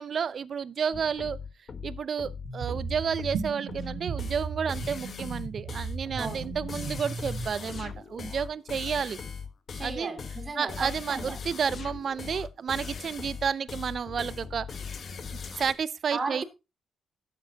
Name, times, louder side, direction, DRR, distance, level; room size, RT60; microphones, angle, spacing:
voice 1, 0.0-1.4 1.8-9.2 9.8-10.1 10.6-14.7 15.3-16.4, right 7 dB, 50° right, 0.6 m, -31 dB
sound 1, 0.9-15.7, left 5 dB, 45° left, 1.1 m, -39 dB
sound 2, 2.5-7.5, right 5 dB, 80° right, 1.8 m, -36 dB
voice 2, 9.7-11.4 16.1-16.4, right 3 dB, 30° right, 2.5 m, -35 dB
11.5 x 7.1 x 4.0 m
cardioid pair, 105°, 0 cm